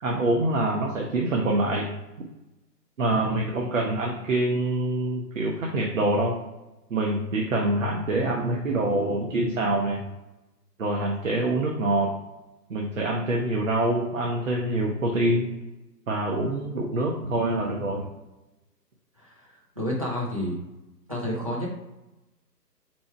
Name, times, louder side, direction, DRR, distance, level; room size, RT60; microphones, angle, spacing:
voice 1, 0.0-1.9 3.0-6.4 6.9-10.0 10.8-12.1 12.7-15.5 16.1-18.1, right 1 dB, 55° right, -1 dB, 0.8 m, -25 dB
voice 2, 19.8-20.6 21.1-21.7, equal, 25° right, -5 dB, 0.5 m, -29 dB
4.3 x 2.2 x 4.4 m, 0.99 s
figure-of-eight pair, 140°, 49 cm